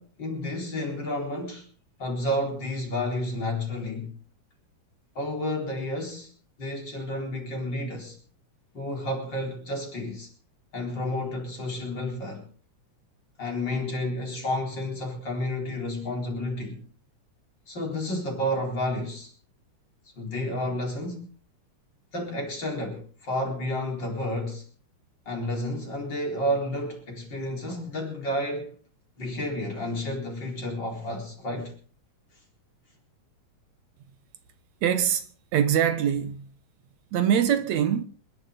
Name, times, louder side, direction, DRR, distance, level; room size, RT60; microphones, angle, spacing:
voice 1, 0.0-1.7 2.0-4.1 5.1-6.3 6.6-8.2 8.7-10.3 10.7-12.5 13.4-16.8 17.7-19.3 20.2-21.3 22.1-24.6 25.3-28.7 29.2-31.8, left 1 dB, 35° left, 4.8 m, -31 dB
voice 2, 34.8-36.5 37.1-38.0, right 9 dB, 75° right, 2.3 m, -23 dB
27.5 x 11.0 x 3.9 m
omnidirectional pair, 3.3 m